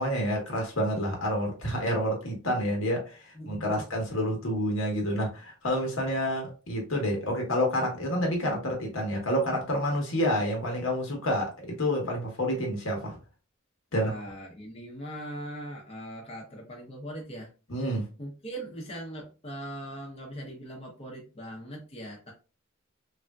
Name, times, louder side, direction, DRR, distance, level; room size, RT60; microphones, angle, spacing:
voice 1, 0.0-13.2 13.9-14.1 17.7-18.1, equal, 75° left, 1.1 m, -28 dB
voice 2, 3.3-3.9 13.9-17.5 18.2-22.3, right 1 dB, 30° left, 0.7 m, -40 dB
3.4 x 2.6 x 2.3 m
head